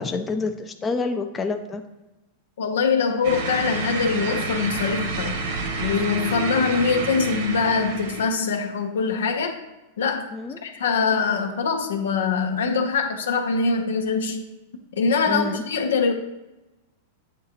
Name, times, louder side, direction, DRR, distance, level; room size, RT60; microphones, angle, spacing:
voice 1, 0.0-1.8 10.3-10.6 15.3-15.6, left 3 dB, 20° left, 6 dB, 0.5 m, -27 dB
voice 2, 2.6-5.4 5.8-9.5 10.0-10.3 10.6-14.4 15.0-16.1, left 5 dB, 80° left, 5 dB, 0.9 m, -23 dB
sound 1, 3.2-8.3, right 3 dB, 65° right, 1.1 m, -29 dB
8.7 x 3.7 x 2.9 m, 1.0 s
hypercardioid pair, 115°, 0 cm